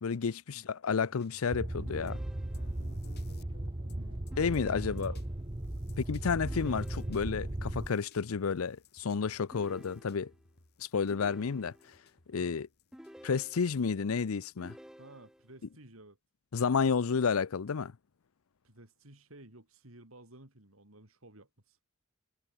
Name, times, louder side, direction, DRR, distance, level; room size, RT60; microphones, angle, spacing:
voice 1, 0.0-2.2 4.4-5.1 6.1-10.3 10.8-11.7 12.3-12.7 13.2-14.7 16.5-17.9, left 5 dB, 85° left, 0.6 m, -31 dB
sound 1, 1.0-13.6, left 2 dB, 50° left, 3.1 m, -59 dB
sound 2, 1.5-7.9, right 1 dB, 25° right, 0.9 m, -37 dB
sound 3, 1.9-2.9 4.3-5.4 6.5-7.5 9.5-10.5 11.1-12.1 12.9-14.0 14.6-15.6, equal, 5° right, 3.0 m, -53 dB
voice 2, 3.8-5.2 5.7-6.0 12.4-12.6 15.0-16.2 18.6-21.8, right 1 dB, 80° right, 4.3 m, -54 dB
head